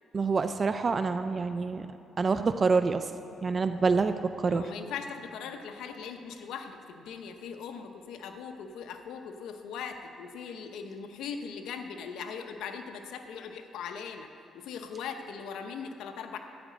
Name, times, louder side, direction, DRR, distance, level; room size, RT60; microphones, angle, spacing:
voice 1, 0.1-1.9 2.2-3.1 3.4-4.7, right 4 dB, 40° right, 10 dB, 0.4 m, -27 dB
voice 2, 4.5-14.3 14.5-16.4, left 6 dB, 85° left, 6 dB, 0.8 m, -40 dB
14.0 x 9.2 x 5.1 m, 2.9 s
cardioid pair, 90°, 0 cm